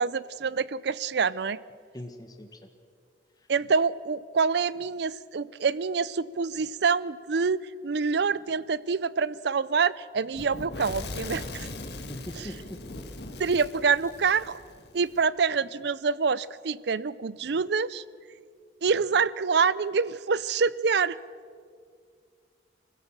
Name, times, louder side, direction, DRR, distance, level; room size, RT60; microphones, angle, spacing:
voice 1, 0.0-1.6 3.5-11.7 13.4-14.6 14.9-18.0 18.8-21.2, right 5 dB, 65° right, 19 dB, 0.5 m, -26 dB
voice 2, 1.9-2.7 3.4-3.5 12.1-12.8, left 1 dB, 20° left, 4 dB, 1.4 m, -41 dB
Fire / Explosion, 10.3-15.2, left 2 dB, 65° left, 1.8 m, -39 dB
24.0 x 15.5 x 7.4 m, 2.1 s
head